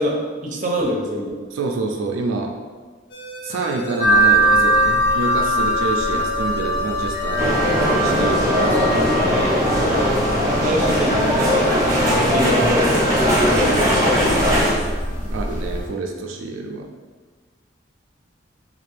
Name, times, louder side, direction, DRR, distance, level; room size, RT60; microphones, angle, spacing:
voice 1, 0.0-1.4 9.8-10.2 10.6-11.5 11.9-14.7 15.1-15.2, equal, 40° right, -1 dB, 0.6 m, -25 dB
voice 2, 1.5-2.5 3.4-7.4 8.0-8.9 15.3-16.9, right 3 dB, 85° right, 2 dB, 0.4 m, -27 dB
sound 1, 3.1-8.2, left 1 dB, 55° left, 0.5 m, -33 dB
sound 2, 4.0-15.9, right 1 dB, 40° left, 1.0 m, -23 dB
sound 3, 7.4-14.7, equal, 15° right, 0.8 m, -19 dB
3.2 x 2.4 x 3.2 m, 1.5 s
head